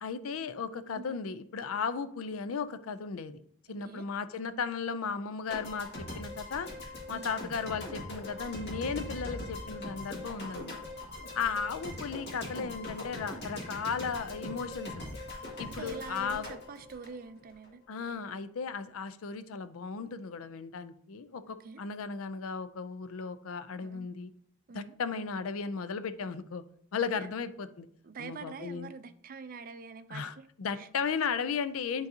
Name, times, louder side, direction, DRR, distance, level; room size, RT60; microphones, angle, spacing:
voice 1, 0.0-3.4 3.7-6.7 7.1-10.8 11.3-15.2 15.6-16.5 17.9-24.3 24.7-26.6 26.9-27.9 28.2-28.9 30.1-32.1, left 5 dB, 85° left, 12 dB, 0.5 m, -35 dB
sound 1, 5.5-17.7, left 1 dB, 50° left, 1.8 m, -41 dB
voice 2, 15.7-17.8 21.5-21.8 23.8-24.1 24.7-24.9 27.0-27.4 28.0-30.5 30.7-30.9, right 5 dB, 45° right, 11 dB, 0.4 m, -45 dB
10.5 x 3.9 x 2.8 m, 0.66 s
head